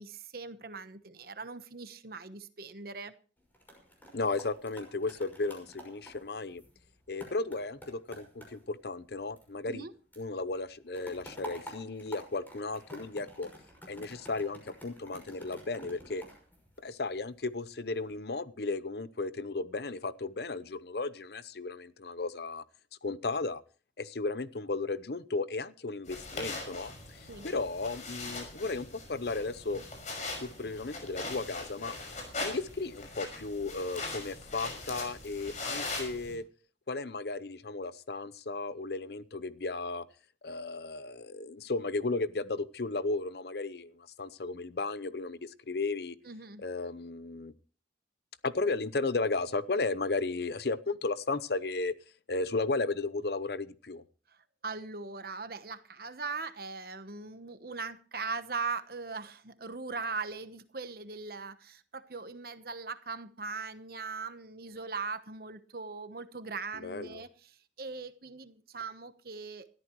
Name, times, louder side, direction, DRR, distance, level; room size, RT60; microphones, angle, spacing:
voice 1, 0.0-3.1 9.7-9.9 27.3-27.5 46.2-46.6 54.6-69.7, right 4 dB, 55° right, 11 dB, 1.1 m, -40 dB
sound 1, 3.4-9.9 10.1-17.3 17.8-18.1, equal, 10° left, 5.7 m, -51 dB
voice 2, 4.1-6.6 7.1-9.8 10.2-13.5 13.9-16.2 16.8-22.6 23.0-23.6 24.0-29.8 30.4-31.9 32.4-36.4 36.9-40.1 40.4-46.2 46.6-47.5 48.4-51.9 52.3-54.0 66.8-67.2, left 3 dB, 60° left, 15 dB, 0.7 m, -34 dB
sound 2, 26.1-36.4, left 3 dB, 40° left, 5.7 m, -41 dB
19.5 x 13.5 x 3.1 m, 0.39 s
head